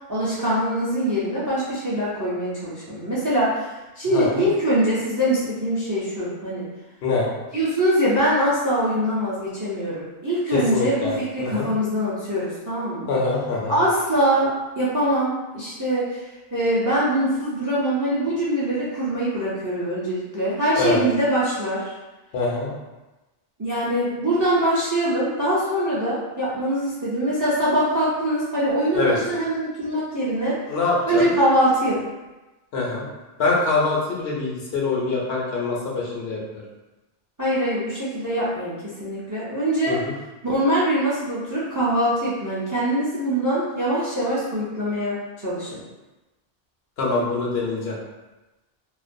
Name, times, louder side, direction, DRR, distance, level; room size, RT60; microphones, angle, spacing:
voice 1, 0.1-6.7 7.5-13.1 13.7-16.2 16.5-21.9 23.6-30.6 31.1-32.0 37.4-40.0 40.4-45.8, right 1 dB, 30° right, -8 dB, 0.4 m, -23 dB
voice 2, 4.1-4.4 7.0-7.3 10.5-11.1 11.4-11.7 13.1-13.8 20.8-21.0 22.3-22.7 28.9-29.2 30.7-31.2 32.7-33.0 33.4-36.6 39.9-40.1 47.0-48.0, left 3 dB, 80° left, -3 dB, 0.9 m, -24 dB
2.4 x 2.2 x 2.6 m, 1.1 s
omnidirectional pair, 1.0 m